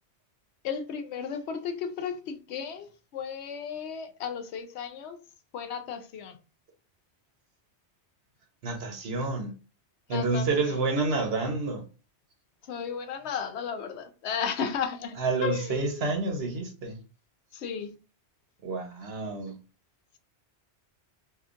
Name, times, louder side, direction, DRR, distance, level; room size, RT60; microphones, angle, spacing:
voice 1, 0.6-5.2 5.5-6.4 10.1-10.5 12.7-15.2 15.4-16.0 17.5-17.9, left 7 dB, 75° left, 0.8 m, -34 dB
voice 2, 8.6-9.5 10.1-11.8 15.2-17.0 18.6-19.6, right 3 dB, 65° right, 1.0 m, -29 dB
3.7 x 2.5 x 2.4 m
omnidirectional pair, 1.1 m